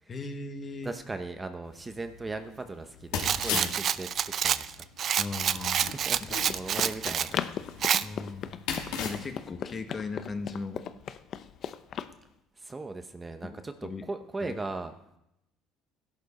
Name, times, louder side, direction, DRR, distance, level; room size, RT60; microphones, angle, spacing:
voice 1, 0.1-0.9 3.5-3.7 5.2-5.9 8.0-8.5 9.0-10.8 13.4-14.0 14.4-14.5, left 4 dB, 30° left, 6 dB, 1.5 m, -37 dB
voice 2, 0.8-4.7 5.7-7.5 8.0-8.4 12.6-14.9, right 3 dB, 15° right, 7 dB, 0.9 m, -38 dB
sound 1, 1.7-9.4, left 6 dB, 85° left, 2.9 m, -39 dB
Rattle, 3.2-7.3 7.8-8.0, right 9 dB, 45° right, 0.5 m, -28 dB
Run, 5.9-12.1, left 9 dB, 50° left, 0.7 m, -38 dB
15.0 x 11.5 x 4.2 m, 0.82 s
cardioid pair, 115°, 0 cm